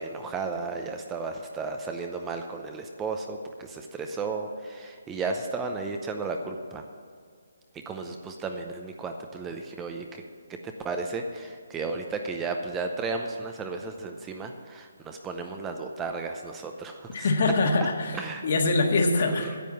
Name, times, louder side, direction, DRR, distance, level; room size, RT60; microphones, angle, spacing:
voice 1, 0.0-6.8 7.9-10.2 10.6-17.3 18.1-18.4 19.2-19.6, right 4 dB, 10° right, 4 dB, 0.7 m, -34 dB
voice 2, 17.1-19.6, left 3 dB, 50° left, 3 dB, 1.7 m, -24 dB
10.0 x 7.5 x 8.6 m, 2.1 s
hypercardioid pair, 160°, 0 cm